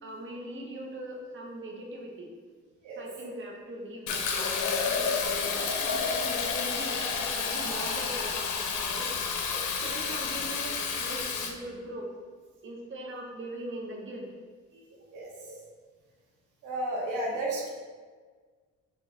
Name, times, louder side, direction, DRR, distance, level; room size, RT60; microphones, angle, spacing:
voice 1, 0.0-2.3 3.0-9.1 9.8-12.1 12.6-14.3 14.9-15.1 15.4-15.7 17.5-17.7, right 1 dB, 40° right, -1 dB, 0.9 m, -41 dB
Fill (with liquid), 4.1-11.5, left 5 dB, 75° left, 0.7 m, -30 dB
voice 2, 16.6-17.7, right 1 dB, 85° right, -2 dB, 1.0 m, -33 dB
4.1 x 3.2 x 3.9 m, 1.5 s
cardioid pair, 90°, 30 cm